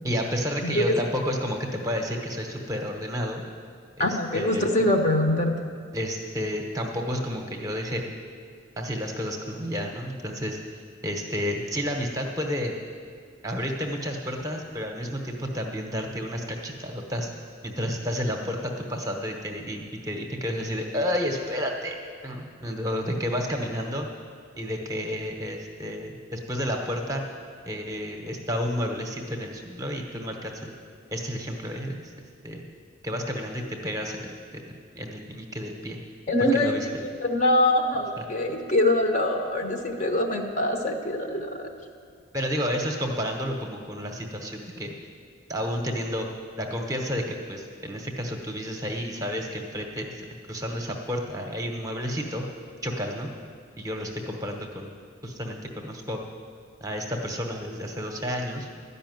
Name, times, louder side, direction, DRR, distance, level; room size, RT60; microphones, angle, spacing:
voice 1, 0.0-3.4 4.0-4.8 5.9-8.1 8.8-10.6 11.0-12.8 13.4-17.3 17.6-24.1 24.6-27.2 27.7-30.7 31.1-32.1 32.4-32.6 33.0-36.0 36.4-36.9 38.2-38.3 42.3-44.9 45.5-46.3 46.6-52.5 52.8-53.3 53.8-54.9 55.2-56.2 56.8-58.7, equal, 15° right, 2 dB, 0.9 m, -31 dB
voice 2, 0.6-1.0 4.0-5.5 36.3-36.7 37.0-41.7, left 1 dB, 35° left, 3 dB, 0.9 m, -24 dB
12.5 x 5.6 x 9.2 m, 2.2 s
head